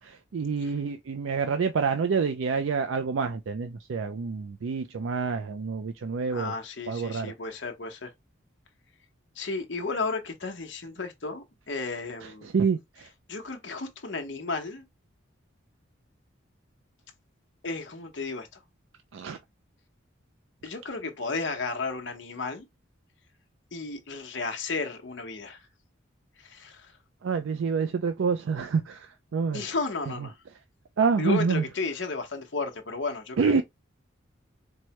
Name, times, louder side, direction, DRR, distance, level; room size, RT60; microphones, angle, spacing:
voice 1, 0.0-6.5 6.9-7.3 12.2-13.1 19.1-19.4 27.2-29.7 30.2-30.3 31.0-31.7 33.4-33.6, right 5 dB, 80° right, 0.4 m, -27 dB
voice 2, 6.3-8.1 9.4-12.5 13.3-14.9 17.6-18.6 20.6-22.7 23.7-25.6 26.4-26.9 29.5-30.3 31.2-33.6, left 3 dB, 65° left, 0.9 m, -33 dB
4.6 x 2.2 x 2.9 m
head